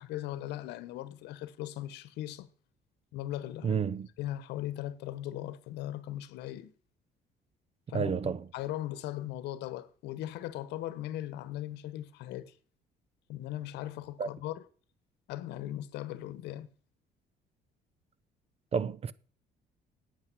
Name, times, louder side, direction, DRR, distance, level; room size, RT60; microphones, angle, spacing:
voice 1, 0.0-2.5 3.1-3.8 4.2-6.7 7.9-8.1 8.5-12.6 13.3-14.6 15.3-16.7, left 13 dB, 85° left, 1.1 m, -38 dB
voice 2, 3.6-4.1 7.9-8.4 14.2-14.3 18.7-19.1, right 6 dB, 35° right, 0.7 m, -30 dB
9.2 x 9.1 x 6.2 m
cardioid pair, 110°, 17 cm